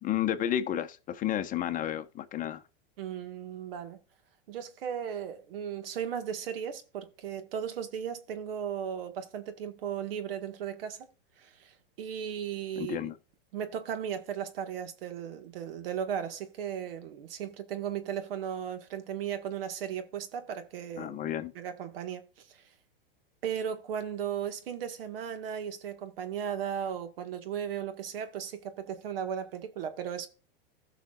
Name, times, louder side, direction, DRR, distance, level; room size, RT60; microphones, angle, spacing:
voice 1, 0.0-2.6 12.8-13.2 21.0-21.5, left 11 dB, 30° left, 1.0 m, -31 dB
voice 2, 3.0-4.0 4.5-11.1 11.4-13.0 13.5-21.2 21.6-22.6 23.4-30.3, right 8 dB, 75° right, 1.7 m, -36 dB
16.5 x 6.0 x 2.4 m
hypercardioid pair, 120°, 29 cm